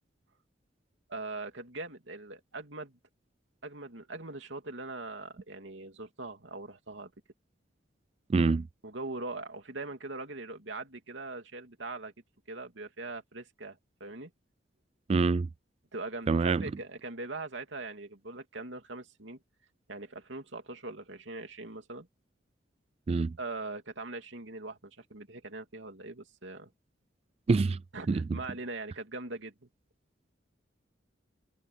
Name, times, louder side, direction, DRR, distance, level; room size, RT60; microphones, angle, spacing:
voice 1, 1.1-3.0 3.6-7.1 8.8-12.1 12.5-14.3 15.9-19.4 19.9-22.1 23.4-26.7 27.9-29.7, right 2 dB, 90° right, 2.9 m, -41 dB
voice 2, 8.3-8.6 15.1-15.5 16.3-16.6 23.1-23.3 27.5-27.8 28.1-28.4, right 4 dB, 35° right, 0.3 m, -25 dB
head